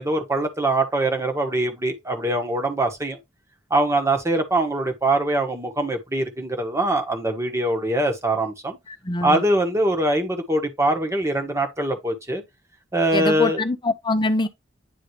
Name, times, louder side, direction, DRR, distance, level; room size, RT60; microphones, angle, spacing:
voice 1, 0.0-3.2 3.7-8.8 9.2-12.4 12.9-13.6, right 1 dB, 15° right, 1.3 m, -23 dB
voice 2, 8.9-9.4 13.1-14.5, left 2 dB, 25° left, 0.8 m, -24 dB
9.6 x 3.6 x 3.2 m
head